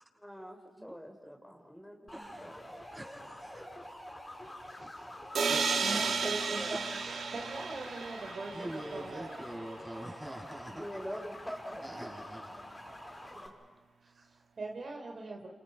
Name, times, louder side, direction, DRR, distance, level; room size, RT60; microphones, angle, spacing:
voice 1, 0.1-2.8 5.8-6.3 6.6-6.8 10.8-12.1 12.4-13.0, equal, 5° left, 3 dB, 4.8 m, -45 dB
sound 1, 2.1-13.5, left 1 dB, 30° left, 6.8 m, -47 dB
voice 2, 2.1-2.5 2.9-3.7 5.5-5.7 8.5-10.9 11.8-12.6, right 1 dB, 15° right, 2 dB, 7.0 m, -44 dB
voice 3, 4.7-5.5 5.8-9.4 14.0-15.5, right 3 dB, 60° right, 2 dB, 3.5 m, -42 dB
sound 2, 5.3-9.2, right 5 dB, 85° right, 2.3 m, -33 dB
28.5 x 28.0 x 5.6 m, 1.3 s
cardioid pair, 45°, 0 cm